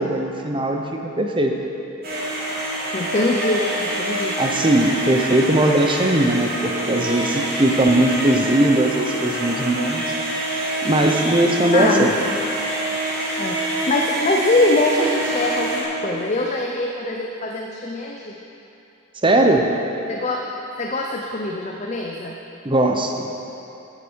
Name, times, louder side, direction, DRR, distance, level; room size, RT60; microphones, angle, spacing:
voice 1, 0.0-1.5 4.4-10.1 10.8-12.1 19.2-19.7 22.6-23.3, right 1 dB, 25° right, 2 dB, 0.8 m, -19 dB
sound 1, 2.0-15.8, right 1 dB, 50° right, 2.4 m, -26 dB
voice 2, 2.9-4.3 11.7-12.1 13.4-18.4 20.1-20.5 20.8-22.4, left 2 dB, 35° left, 0 dB, 0.6 m, -23 dB
11.5 x 8.7 x 4.7 m, 2.9 s
head